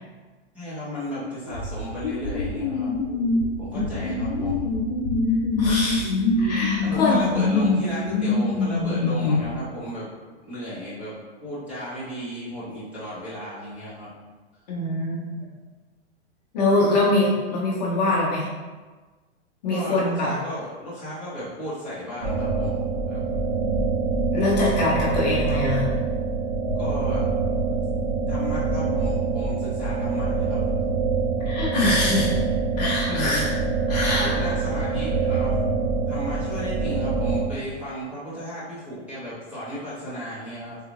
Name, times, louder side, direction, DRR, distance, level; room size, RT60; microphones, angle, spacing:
voice 1, 0.5-3.0 3.6-4.7 6.8-10.1 10.4-11.1 11.4-14.1 19.7-23.2 24.8-25.0 26.8-27.3 27.7-27.8 28.3-30.6 33.1-33.4 34.0-35.6 36.1-40.8, equal, 5° right, -12 dB, 0.7 m, -34 dB
sound 1, 1.5-9.6, left 3 dB, 75° left, 0.6 m, -24 dB
voice 2, 5.6-7.2 14.7-15.5 16.5-18.5 19.6-20.3 24.3-25.9 31.5-32.3 32.8-33.5 33.9-34.5, left 2 dB, 35° left, -5 dB, 0.6 m, -23 dB
sound 2, 22.2-37.4, right 4 dB, 40° right, 0.8 m, -25 dB
3.6 x 2.4 x 3.0 m, 1.3 s
hypercardioid pair, 160°, 34 cm